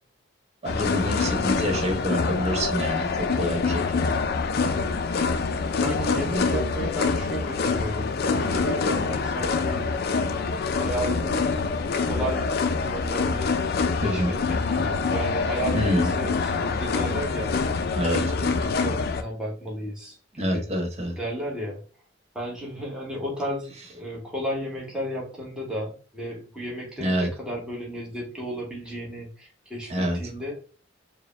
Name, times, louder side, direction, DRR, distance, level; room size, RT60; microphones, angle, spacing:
sound 1, 0.6-19.2, left 4 dB, 55° left, 0.4 m, -25 dB
voice 1, 0.6-4.0 14.0-14.3 15.7-16.1 18.0-18.2 20.4-21.2 27.0-27.3 29.9-30.2, equal, 35° right, 4 dB, 0.8 m, -27 dB
voice 2, 5.7-9.9 10.8-11.4 12.0-12.5 12.8-13.6 14.0-17.6 18.0-20.7 21.2-21.8 22.3-30.6, equal, 5° right, -4 dB, 1.1 m, -33 dB
4.7 x 2.2 x 3.2 m, 0.38 s
head